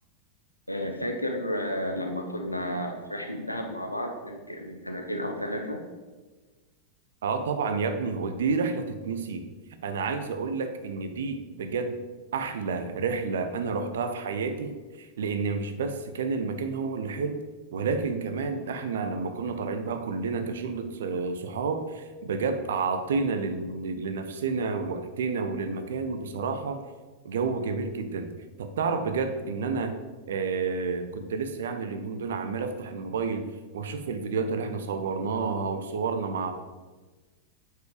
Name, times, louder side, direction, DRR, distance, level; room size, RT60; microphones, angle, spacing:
voice 1, 0.7-5.8, equal, 85° left, 3 dB, 0.9 m, -32 dB
voice 2, 7.2-9.5 9.8-12.0 12.3-17.4 17.7-26.8 27.2-28.3 28.6-30.0 30.3-36.5, right 4 dB, 60° right, 8 dB, 0.7 m, -30 dB
8.0 x 4.8 x 4.9 m, 1.3 s
figure-of-eight pair, 90°, 0 cm